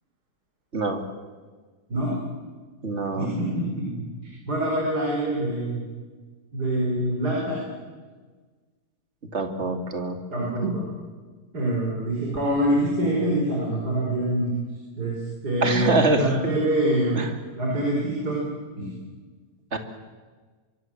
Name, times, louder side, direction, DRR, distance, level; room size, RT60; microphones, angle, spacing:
voice 1, 0.7-1.0 2.8-3.3 9.3-10.2 10.6-10.7 15.6-16.3 17.2-17.3 19.7-19.8, right 2 dB, 35° right, 7 dB, 2.5 m, -24 dB
voice 2, 3.1-3.9 4.2-5.8 6.5-7.6 10.3-10.8 11.5-14.5 15.0-17.2 17.6-18.4 18.8-18.9, right 1 dB, 55° right, -2 dB, 5.4 m, -25 dB
24.5 x 23.5 x 7.7 m, 1.4 s
omnidirectional pair, 2.0 m